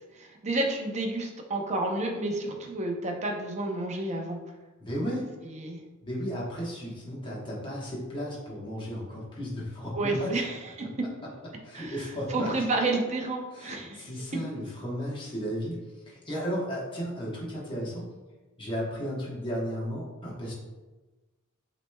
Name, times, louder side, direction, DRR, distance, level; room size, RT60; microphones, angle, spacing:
voice 1, 0.2-4.4 5.4-5.8 9.9-10.7 11.7-14.1, right 2 dB, 30° right, 2 dB, 0.7 m, -30 dB
voice 2, 4.8-5.3 6.0-10.4 11.6-12.5 13.5-15.8 16.1-18.0 18.6-20.5, equal, 25° left, -5 dB, 1.1 m, -34 dB
7.3 x 3.1 x 2.2 m, 1.2 s
head